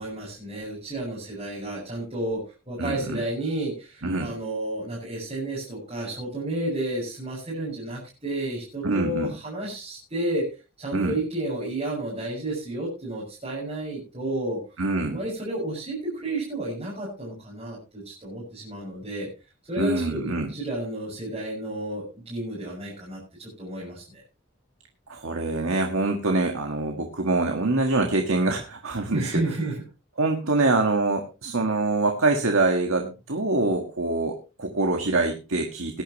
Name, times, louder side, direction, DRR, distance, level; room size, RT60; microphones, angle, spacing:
voice 1, 0.0-10.4 10.8-14.6 15.0-19.3 19.7-24.2 29.1-29.8, right 1 dB, 30° right, -6 dB, 6.2 m, -31 dB
voice 2, 2.8-3.2 4.0-4.3 8.8-9.3 10.9-11.2 14.8-15.2 19.8-20.5 25.1-29.4 30.2-36.0, right 2 dB, 90° right, 3 dB, 1.7 m, -25 dB
18.5 x 10.5 x 3.0 m, 0.30 s
head